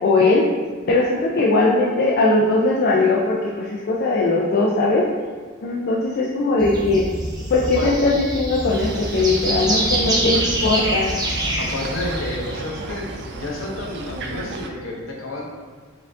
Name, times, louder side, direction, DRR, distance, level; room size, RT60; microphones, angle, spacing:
voice 1, 0.0-0.4 0.9-5.1 5.6-7.1 7.5-11.1, left 2 dB, 50° left, -4 dB, 0.4 m, -19 dB
sound 1, 6.6-12.7, right 1 dB, 20° right, 0.6 m, -25 dB
sound 2, 8.7-14.7, right 2 dB, 60° right, 0.4 m, -33 dB
voice 2, 11.6-13.0 13.3-15.5, left 2 dB, 75° left, -2 dB, 0.8 m, -30 dB
4.4 x 2.5 x 3.5 m, 1.5 s
head